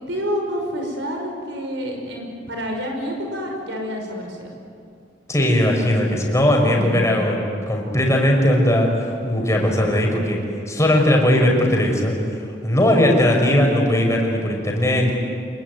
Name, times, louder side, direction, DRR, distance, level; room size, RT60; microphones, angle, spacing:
voice 1, 0.1-4.5 6.6-7.1, equal, 75° right, 1 dB, 5.9 m, -28 dB
voice 2, 5.3-7.4 7.7-10.4 10.7-12.2 12.6-15.1, left 1 dB, 15° left, 0 dB, 5.4 m, -18 dB
27.5 x 22.0 x 9.4 m, 2.4 s
head